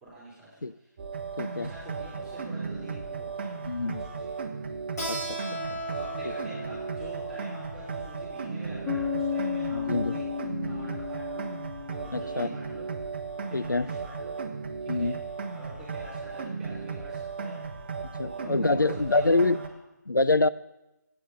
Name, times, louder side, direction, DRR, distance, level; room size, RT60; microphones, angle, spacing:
voice 1, 0.0-0.5 0.8-0.9 1.4-3.6 4.1-4.3 5.9-10.3 10.6-11.5 11.9-12.9 13.5-14.4 14.8-15.1 15.5-17.6 18.2-19.6, right 1 dB, 10° right, -9 dB, 2.6 m, -46 dB
sound 1, 1.0-19.7, right 5 dB, 35° right, 0.8 m, -36 dB
voice 2, 1.4-1.7 3.7-4.0 5.1-5.4 5.7-5.8 9.7-10.2 12.1-12.5 13.5-13.9 14.9-15.2 18.2-19.6 20.1-20.5, left 3 dB, 90° left, 15 dB, 0.5 m, -25 dB
Keyboard (musical), 5.0-10.2, right 1 dB, 60° left, 3.0 m, -39 dB
Bass guitar, 8.9-12.7, left 7 dB, 10° left, 2.0 m, -33 dB
8.3 x 6.5 x 7.8 m, 0.94 s
figure-of-eight pair, 150°, 10 cm